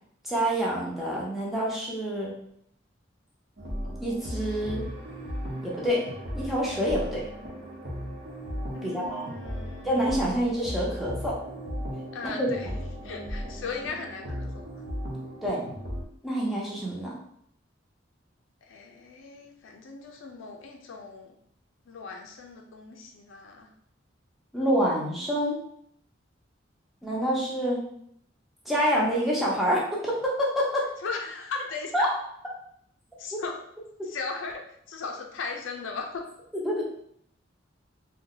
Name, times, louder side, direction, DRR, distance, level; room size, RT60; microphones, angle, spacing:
voice 1, 0.2-2.3 4.0-4.8 5.6-6.0 6.3-7.2 8.8-9.3 9.8-11.3 12.2-12.5 15.4-15.6 16.2-17.1 24.5-25.6 27.0-27.8 28.7-30.8 31.9-32.1 33.3-33.4 36.6-36.9, equal, ahead, -5 dB, 0.7 m, -27 dB
sound 1, 3.6-16.0, equal, 60° right, 0.7 m, -36 dB
voice 2, 8.7-10.0 12.1-12.7 13.0-14.7 18.6-21.3 21.9-23.7 31.0-32.1 33.2-33.6 34.0-34.6 34.9-36.2, left 4 dB, 85° left, 1 dB, 0.5 m, -37 dB
2.7 x 2.2 x 3.8 m, 0.70 s
head